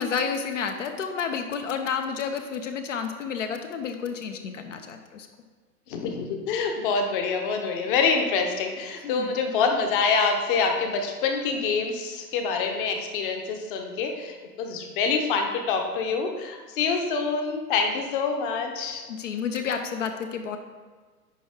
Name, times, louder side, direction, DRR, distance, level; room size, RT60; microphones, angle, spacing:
voice 1, 0.0-5.3 9.0-9.4 19.1-20.6, left 6 dB, 50° left, 6 dB, 0.7 m, -30 dB
voice 2, 5.9-19.0, left 5 dB, 35° left, 4 dB, 1.0 m, -26 dB
10.0 x 4.6 x 3.6 m, 1.5 s
figure-of-eight pair, 115°, 47 cm